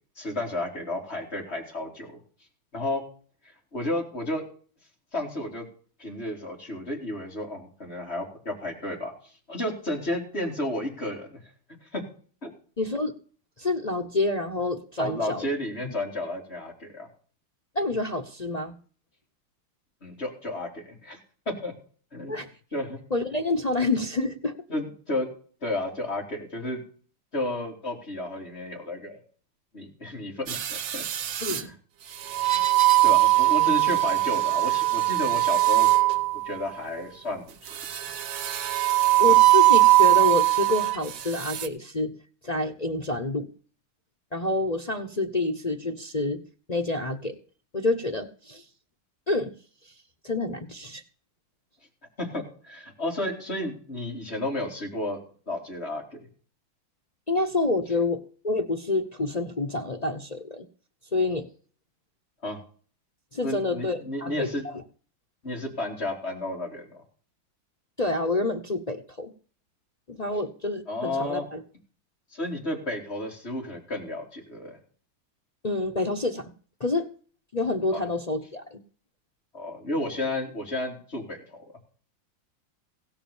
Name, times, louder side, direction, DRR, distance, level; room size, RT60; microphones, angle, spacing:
voice 1, 0.2-2.2 2.7-3.0 3.7-4.4 5.1-5.7 6.0-11.4 11.9-12.0 12.4-12.5 15.0-17.1 20.0-21.2 21.5-21.7 22.1-22.3 22.7-23.0 24.7-25.3 25.6-26.8 27.3-29.2 29.7-31.0 31.5-31.7 33.0-35.9 36.4-38.0 39.3-39.4 52.2-55.2 55.5-56.3 62.4-62.6 63.4-64.6 65.4-67.0 70.9-71.5 72.3-74.8 77.9-78.0 79.5-81.6, left 1 dB, 30° left, 0 dB, 3.6 m, -32 dB
voice 2, 12.8-13.1 13.6-15.5 15.8-15.9 17.7-18.7 22.3-22.5 23.1-24.5 31.4-31.7 39.2-42.2 42.4-43.5 44.3-46.4 46.7-47.4 47.7-48.6 49.3-49.5 49.9-50.0 50.2-51.0 57.3-60.7 61.1-61.5 63.3-64.8 68.0-69.3 70.1-71.6 75.6-76.5 76.8-77.1 77.5-78.8, left 2 dB, 45° left, 2 dB, 0.5 m, -28 dB
sound 1, 30.5-31.6 32.3-36.6 37.8-41.0 41.4-41.7, right 17 dB, 75° right, 1.7 m, -21 dB
16.5 x 6.0 x 7.1 m, 0.43 s
omnidirectional pair, 2.2 m